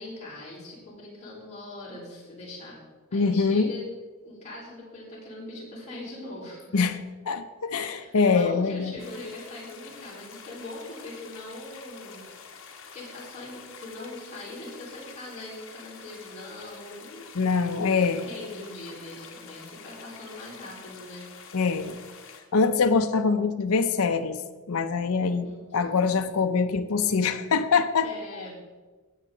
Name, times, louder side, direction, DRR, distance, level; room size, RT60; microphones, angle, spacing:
voice 1, 0.0-2.8 3.1-3.9 4.2-6.8 7.7-12.7 12.9-17.3 17.8-21.2 25.2-25.8 28.0-28.5, left 2 dB, 30° left, -6 dB, 4.4 m, -42 dB
voice 2, 3.1-3.7 6.7-7.0 7.3-8.9 17.3-18.2 21.5-22.0 22.5-24.4 24.7-25.5 25.7-28.1, left 5 dB, 80° left, 8 dB, 0.6 m, -24 dB
sound 1, 9.0-22.4, left 6 dB, 60° left, 1.5 m, -47 dB
18.0 x 7.4 x 3.9 m, 1.3 s
head